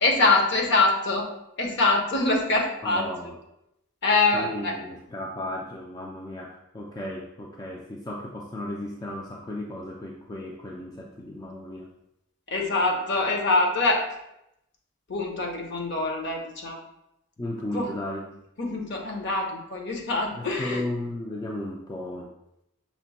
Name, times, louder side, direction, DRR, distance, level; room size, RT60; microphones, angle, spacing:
voice 1, 0.0-1.2 1.6-3.1 4.0-4.7 12.5-14.0 15.1-16.8 17.7-17.9 18.6-20.8, left 3 dB, 50° left, 2 dB, 0.8 m, -24 dB
voice 2, 2.8-3.4 4.3-11.9 17.4-18.3 20.3-22.3, left 1 dB, 15° left, -1 dB, 0.3 m, -35 dB
5.9 x 2.2 x 4.0 m, 0.83 s
head